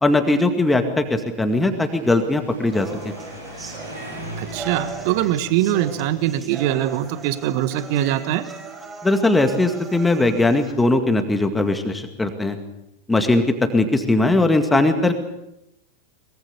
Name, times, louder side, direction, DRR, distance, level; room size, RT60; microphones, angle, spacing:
voice 1, 0.0-3.1 9.0-12.6 13.1-13.4 13.7-15.2, left 2 dB, 10° left, 6 dB, 2.1 m, -19 dB
sound 1, 1.4-7.5, equal, 85° right, 7.3 m, -40 dB
sound 2, 2.7-10.7, right 4 dB, 20° right, 5.6 m, -38 dB
voice 2, 4.4-8.4, right 12 dB, 45° right, 12 dB, 1.4 m, -22 dB
23.0 x 22.5 x 6.8 m, 0.85 s
figure-of-eight pair, 90°, 0 cm